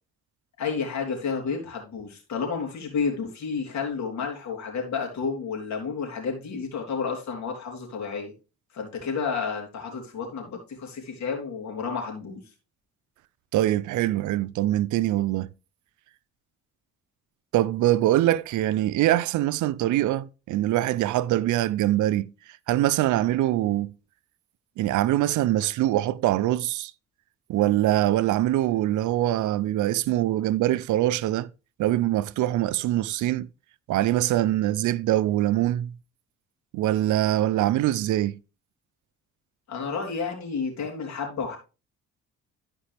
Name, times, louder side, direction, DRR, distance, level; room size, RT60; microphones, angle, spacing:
voice 1, 0.6-8.3 8.7-12.4 39.7-41.6, left 5 dB, 65° left, 3.4 m, -31 dB
voice 2, 13.5-15.5 17.5-22.3 22.7-23.9 24.8-26.9 27.5-31.5 31.8-33.5 33.9-36.0 36.7-38.4, right 14 dB, 80° right, 0.5 m, -23 dB
13.5 x 5.1 x 3.4 m
cardioid pair, 90°, 30 cm